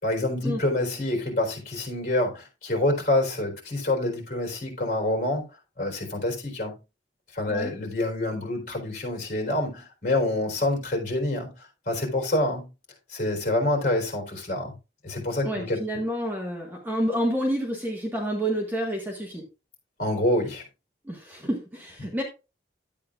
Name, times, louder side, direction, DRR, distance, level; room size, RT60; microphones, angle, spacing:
voice 1, 0.0-5.4 5.8-6.7 7.3-11.5 11.9-12.7 13.1-14.7 15.0-15.8 20.0-20.6, left 1 dB, 45° left, 4.1 m, -27 dB
voice 2, 15.4-19.4 21.0-22.2, equal, 10° right, 1.6 m, -29 dB
11.5 x 8.7 x 2.5 m
head